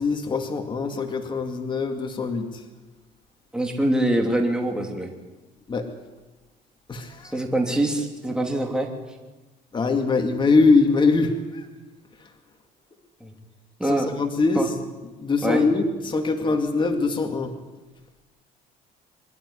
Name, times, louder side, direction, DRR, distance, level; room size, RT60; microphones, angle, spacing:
voice 1, 0.0-2.5 5.7-5.9 6.9-7.3 9.7-11.6 13.9-14.6 15.2-17.5, left 3 dB, 30° left, 4 dB, 2.3 m, -22 dB
voice 2, 3.5-5.1 7.3-8.9 13.2-13.3 13.8-14.1 14.5-14.7 15.4-15.6, right 1 dB, 5° right, 1 dB, 3.0 m, -24 dB
24.5 x 12.5 x 9.9 m, 1.2 s
cardioid pair, 110°, 17 cm